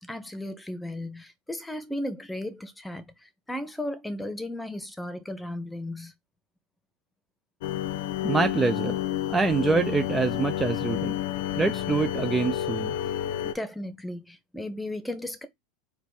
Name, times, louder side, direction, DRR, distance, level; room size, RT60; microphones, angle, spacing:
voice 1, 0.0-6.1 13.4-15.5, left 1 dB, 5° left, 1.1 m, -35 dB
sound 1, 7.6-13.5, left 11 dB, 70° left, 0.8 m, -30 dB
voice 2, 8.2-9.0 9.3-11.2 11.6-12.9, right 4 dB, 20° right, 0.6 m, -25 dB
4.6 x 2.6 x 4.0 m
hypercardioid pair, 85°, 0 cm